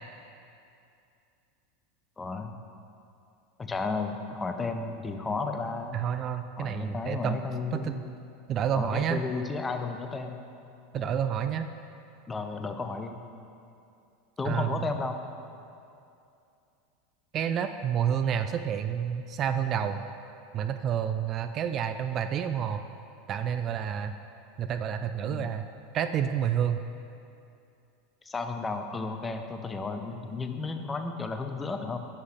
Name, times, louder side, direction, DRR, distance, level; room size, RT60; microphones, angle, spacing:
voice 1, 2.2-2.6 3.6-6.0 6.6-7.9 8.8-10.4 11.0-11.1 12.3-13.2 14.4-15.2 25.2-25.5 28.2-32.0, left 4 dB, 15° left, 6 dB, 0.7 m, -33 dB
voice 2, 5.9-7.4 7.7-7.9 8.5-9.2 10.9-11.7 14.4-14.9 17.3-20.1 20.5-22.8 23.3-24.1 24.6-25.7 25.9-26.8, right 8 dB, 35° right, 9 dB, 0.4 m, -29 dB
11.0 x 8.2 x 3.5 m, 2.6 s
figure-of-eight pair, 80°, 0 cm